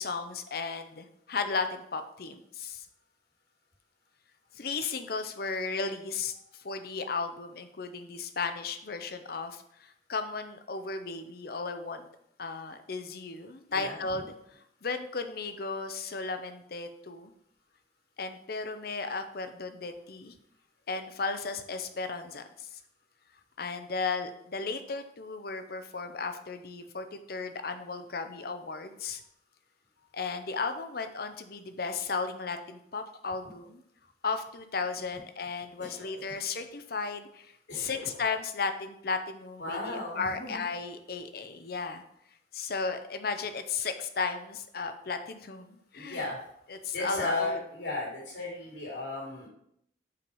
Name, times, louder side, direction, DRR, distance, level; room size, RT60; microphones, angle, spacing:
voice 1, 0.0-2.9 4.5-12.1 12.4-14.2 14.5-17.3 18.2-20.3 20.9-22.7 23.6-29.2 30.1-33.8 34.2-37.5 37.7-42.0 42.5-46.2 46.7-47.6, left 4 dB, 55° left, 8 dB, 0.7 m, -35 dB
voice 2, 13.7-14.2 35.8-36.4 37.7-38.1 39.6-40.6 45.9-46.4 46.9-49.5, left 2 dB, 75° left, -3 dB, 3.1 m, -36 dB
5.8 x 4.7 x 5.4 m, 0.72 s
head